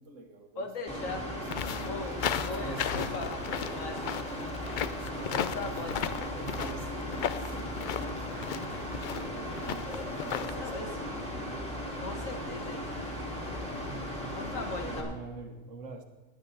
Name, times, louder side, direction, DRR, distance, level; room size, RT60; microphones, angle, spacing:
voice 1, 0.0-0.7 1.3-1.9 2.4-3.1 5.3-5.8 6.2-11.2 13.9-16.0, right 3 dB, 75° right, 6 dB, 1.6 m, -46 dB
voice 2, 0.6-1.3 1.8-4.6 5.2-6.3 10.6-11.2 12.0-13.1 13.5-13.8 14.4-15.2, left 3 dB, 85° left, 5 dB, 1.8 m, -40 dB
Mechanical fan, 0.9-15.0, equal, 5° left, 2.4 m, -37 dB
sound 1, 1.5-10.5, left 9 dB, 65° left, 0.4 m, -35 dB
20.0 x 9.6 x 4.1 m, 1.2 s
omnidirectional pair, 1.3 m